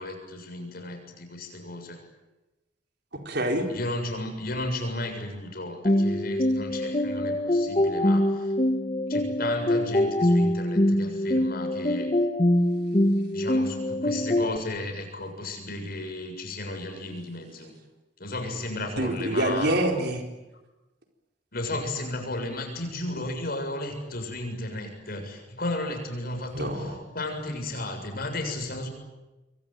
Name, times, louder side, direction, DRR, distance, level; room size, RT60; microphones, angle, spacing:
voice 1, 0.0-2.0 3.7-8.5 9.1-12.1 13.3-17.7 18.2-19.8 21.5-28.9, left 2 dB, 55° left, 4 dB, 7.2 m, -34 dB
voice 2, 3.1-3.7 19.0-20.2 26.5-27.0, right 1 dB, 60° right, 3 dB, 4.4 m, -26 dB
sound 1, 5.8-14.6, left 1 dB, 30° left, 1.6 m, -24 dB
27.0 x 22.5 x 9.2 m, 1.1 s
head